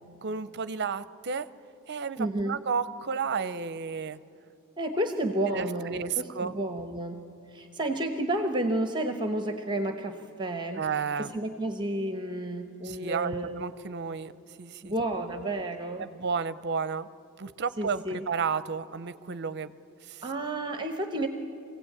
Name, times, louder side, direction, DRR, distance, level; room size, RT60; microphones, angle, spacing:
voice 1, 0.2-1.5 1.9-4.2 5.5-6.6 10.8-11.3 12.8-14.3 14.6-14.9 16.0-17.1 17.4-19.7 20.1-20.2, right 5 dB, 50° right, 15 dB, 0.6 m, -32 dB
voice 2, 2.2-2.6 4.8-10.8 11.2-13.6 14.8-16.1 17.8-18.3 20.2-21.3, right 1 dB, 20° right, 6 dB, 1.0 m, -31 dB
24.5 x 16.5 x 8.7 m, 2.6 s
head